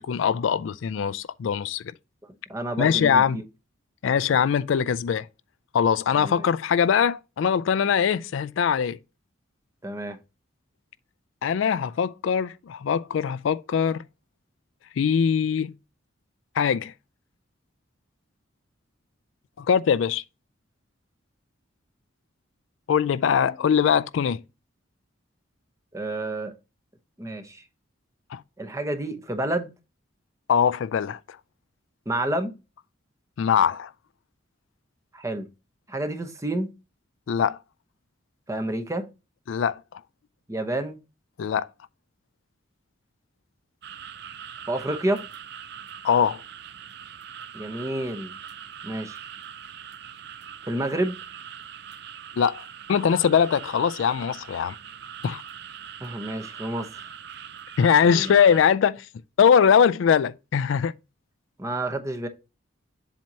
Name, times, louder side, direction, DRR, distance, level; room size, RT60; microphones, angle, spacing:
voice 1, 0.0-1.8 2.8-3.4 4.0-5.3 5.7-9.0 11.4-14.0 15.0-15.7 16.6-16.9 19.6-20.2 22.9-24.4 28.3-28.4 30.5-31.2 33.4-33.9 37.3-37.6 39.5-39.8 41.4-41.7 46.0-46.4 52.4-54.8 55.2-55.4 57.8-59.1 59.4-60.9, left 7 dB, 75° left, 0.3 m, -22 dB
voice 2, 2.5-3.4 6.1-6.5 9.8-10.2 25.9-26.5 27.2-27.6 28.6-29.7 32.1-32.5 35.1-35.5 35.9-36.7 38.5-39.1 40.5-41.0 44.7-45.2 47.5-48.4 48.8-49.2 50.6-51.2 56.0-57.1 58.0-58.4 61.6-62.3, right 1 dB, 15° right, 0.8 m, -29 dB
sound 1, 43.8-58.6, right 8 dB, 55° right, 0.5 m, -42 dB
7.5 x 2.8 x 5.4 m
head